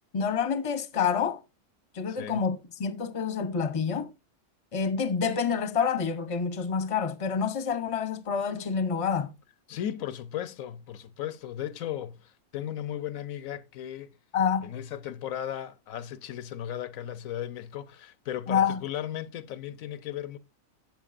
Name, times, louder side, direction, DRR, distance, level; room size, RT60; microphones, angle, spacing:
voice 1, 0.1-1.4 1.9-4.1 4.7-9.3 14.3-14.7 18.5-18.8, left 6 dB, 30° left, 0.7 m, -28 dB
voice 2, 2.1-2.4 9.7-14.1 14.6-20.4, left 11 dB, 80° left, 1.1 m, -36 dB
12.0 x 8.0 x 2.5 m
omnidirectional pair, 1.4 m